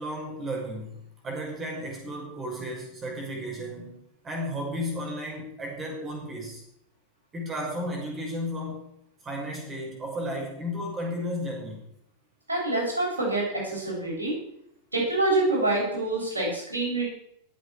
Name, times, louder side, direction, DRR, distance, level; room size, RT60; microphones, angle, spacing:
voice 1, 0.0-4.0 4.2-6.6 7.3-8.9 9.2-11.9, equal, 20° right, 0 dB, 5.9 m, -34 dB
voice 2, 12.5-14.4 14.9-17.0, right 2 dB, 80° right, -3 dB, 7.9 m, -26 dB
22.5 x 8.4 x 4.9 m, 0.73 s
figure-of-eight pair, 90°, 0 cm